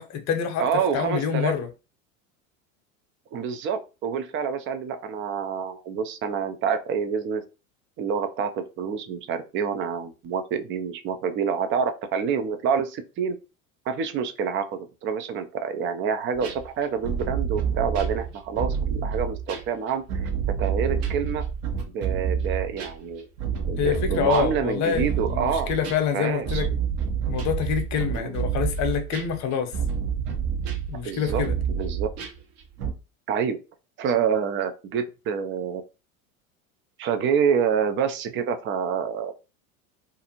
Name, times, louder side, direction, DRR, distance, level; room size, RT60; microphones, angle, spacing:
voice 1, 0.0-0.7 0.9-1.7 23.8-26.7 27.2-29.8 30.9-31.6, left 7 dB, 40° left, 0.8 m, -26 dB
voice 2, 0.6-1.5 3.3-7.4 8.0-13.4 13.9-20.3 20.6-21.4 21.9-23.3 23.7-25.7 26.1-26.7 28.1-28.3 31.0-31.4 31.7-32.1 33.3-33.6 34.0-35.8 37.0-39.3, right 6 dB, 30° right, 0.4 m, -27 dB
sound 1, 16.3-19.7 20.1-32.9, right 7 dB, 55° right, 0.9 m, -28 dB
2.6 x 2.4 x 2.8 m
hypercardioid pair, 85°, 43 cm